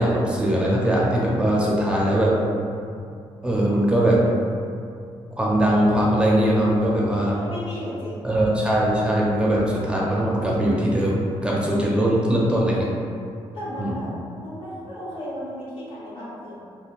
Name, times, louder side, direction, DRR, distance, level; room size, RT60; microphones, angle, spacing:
voice 1, 0.0-2.3 3.4-4.2 5.4-7.4 8.2-12.9 13.8-13.9, right 1 dB, 10° right, -5 dB, 0.5 m, -21 dB
voice 2, 7.2-8.5 13.5-14.1 14.4-16.6, equal, 60° left, -9 dB, 1.2 m, -35 dB
3.6 x 2.3 x 2.4 m, 2.4 s
cardioid pair, 100°, 10 cm